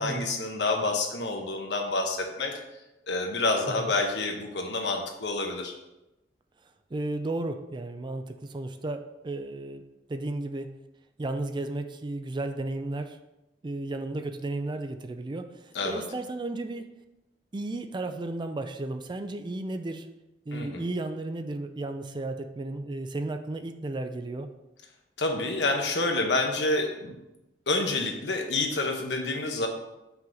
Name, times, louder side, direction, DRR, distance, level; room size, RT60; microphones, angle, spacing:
voice 1, 0.0-2.5 3.1-5.7 15.7-16.0 20.5-20.8 25.2-27.1 27.7-29.7, left 2 dB, 80° left, 3 dB, 1.1 m, -28 dB
voice 2, 6.9-9.8 10.1-10.7 11.2-13.2 13.6-15.5 15.8-16.9 17.5-20.1 20.5-24.5, right 2 dB, 25° right, 7 dB, 0.4 m, -33 dB
5.7 x 3.9 x 5.8 m, 0.95 s
head